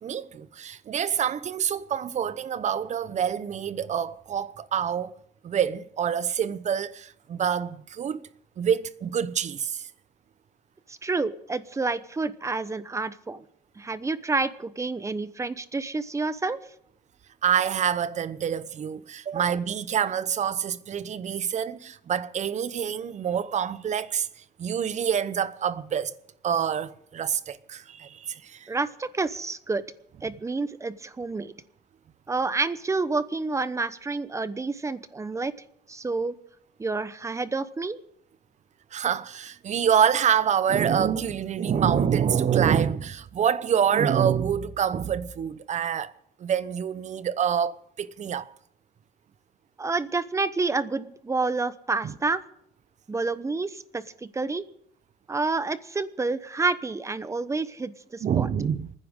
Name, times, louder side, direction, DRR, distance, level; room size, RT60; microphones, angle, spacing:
voice 1, 0.0-5.1 5.4-8.2 8.6-9.9 17.4-24.3 24.6-26.1 26.4-28.7 38.9-46.1 46.4-48.5 52.0-52.1 58.2-58.9, right 8 dB, 45° right, 0.9 m, -26 dB
voice 2, 10.9-13.4 13.8-16.6 28.7-29.8 30.2-31.5 32.3-35.5 35.9-36.3 36.8-38.0 49.8-52.4 53.1-54.6 55.3-58.5, right 3 dB, 15° right, 0.9 m, -29 dB
28.5 x 10.0 x 3.7 m
cardioid pair, 110°, 17 cm